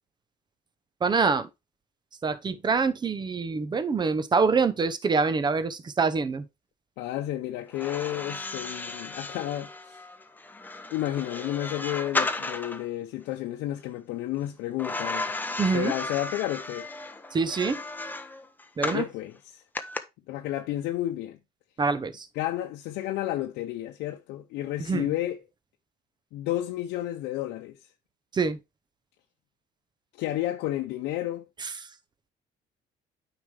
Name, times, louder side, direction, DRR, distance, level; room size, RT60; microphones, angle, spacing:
voice 1, 1.0-1.5 2.2-6.5 15.6-15.9 17.3-17.8 18.8-19.1 21.8-22.3 24.9-25.1 28.3-28.6 31.6-31.7, right 4 dB, 25° right, 0.8 m, -25 dB
voice 2, 7.0-10.0 10.9-15.3 15.7-16.9 18.8-19.6 20.3-21.4 22.3-25.4 26.3-27.8 30.1-31.5, left 14 dB, 90° left, 0.7 m, -31 dB
sound 1, 7.7-12.9 14.8-19.1 19.8-20.0, left 2 dB, 10° left, 0.8 m, -34 dB
8.9 x 5.0 x 3.3 m
cardioid pair, 110°, 17 cm